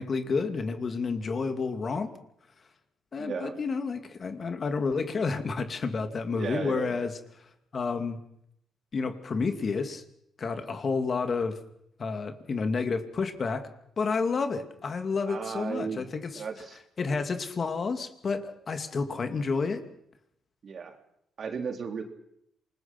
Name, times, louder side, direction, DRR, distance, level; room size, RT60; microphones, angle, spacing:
voice 1, 0.0-2.1 3.1-8.2 8.9-10.0 10.4-11.6 12.0-13.7 14.0-16.4 17.0-19.8, left 4 dB, 40° left, 7 dB, 2.6 m, -30 dB
voice 2, 3.2-3.6 6.3-7.1 15.3-16.0 16.3-16.8 20.6-21.0 21.4-22.0, right 6 dB, 50° right, 5 dB, 3.4 m, -35 dB
28.0 x 20.0 x 6.1 m, 0.73 s
cardioid pair, 90°, 0 cm